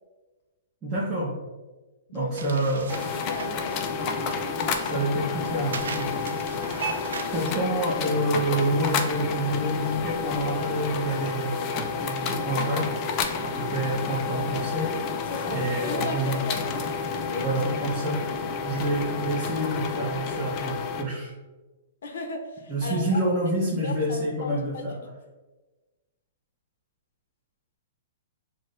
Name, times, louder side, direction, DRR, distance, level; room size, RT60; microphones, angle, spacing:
voice 1, 0.8-1.3 2.1-2.9 4.8-6.1 7.3-12.9 13.4-15.0 15.5-16.4 17.4-18.2 18.6-21.3 22.7-25.0, right 1 dB, 10° right, -10 dB, 0.8 m, -28 dB
voice 2, 2.1-2.6 3.1-3.8 15.3-16.8 17.2-17.6 17.9-18.0 22.0-23.2 23.8-25.0, left 3 dB, 75° left, 4 dB, 0.7 m, -35 dB
sound 1, 2.3-7.5, right 5 dB, 80° right, 0.4 m, -38 dB
sound 2, 2.9-21.0, left 5 dB, 30° left, 0.3 m, -30 dB
5.9 x 2.2 x 2.5 m, 1.2 s
hypercardioid pair, 160°, 0 cm